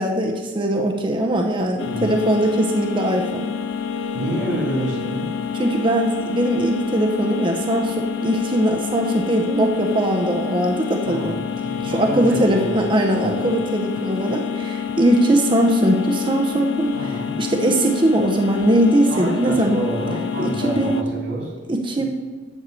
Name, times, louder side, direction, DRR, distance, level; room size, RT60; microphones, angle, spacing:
voice 1, 0.0-3.5 5.6-11.4 11.8-16.9 17.4-19.8 20.4-21.0 21.7-22.1, right 1 dB, 25° right, 2 dB, 0.8 m, -20 dB
sound 1, 1.8-21.0, left 7 dB, 70° left, 0.5 m, -28 dB
voice 2, 4.1-5.3 11.0-12.8 13.1-13.4 16.9-17.3 19.1-21.5, right 1 dB, 80° right, -3 dB, 3.4 m, -28 dB
12.5 x 4.7 x 6.9 m, 1.4 s
head